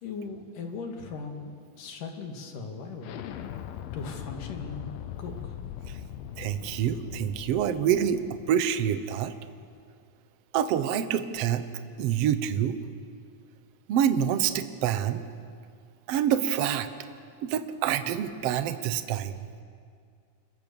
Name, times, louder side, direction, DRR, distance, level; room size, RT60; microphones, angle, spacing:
voice 1, 0.0-3.2 3.9-4.9 5.2-5.5, left 4 dB, 65° left, 4 dB, 3.7 m, -38 dB
Explosion, 3.0-8.5, left 10 dB, 80° left, 2.8 m, -40 dB
voice 2, 6.4-8.2 8.5-9.3 10.5-11.6 12.0-12.8 13.9-15.2 16.1-16.9 17.4-19.3, right 9 dB, 70° right, 11 dB, 1.5 m, -26 dB
28.5 x 22.5 x 7.0 m, 2.2 s
omnidirectional pair, 4.2 m